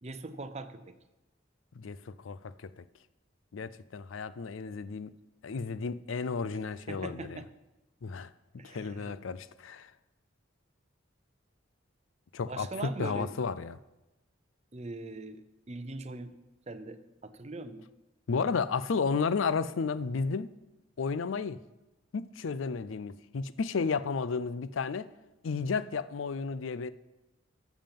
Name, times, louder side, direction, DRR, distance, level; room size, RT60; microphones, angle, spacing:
voice 1, 0.0-0.9 6.9-7.5 8.6-9.2 12.5-13.3 14.7-16.3 16.7-17.9, right 2 dB, 35° right, 0.6 m, -41 dB
voice 2, 1.8-2.8 3.5-5.1 5.4-7.4 8.0-8.3 8.6-9.9 12.3-13.8 18.3-20.5 21.0-21.6 22.1-25.1 25.4-26.9, left 5 dB, 80° left, 0.5 m, -33 dB
13.0 x 7.3 x 5.3 m
head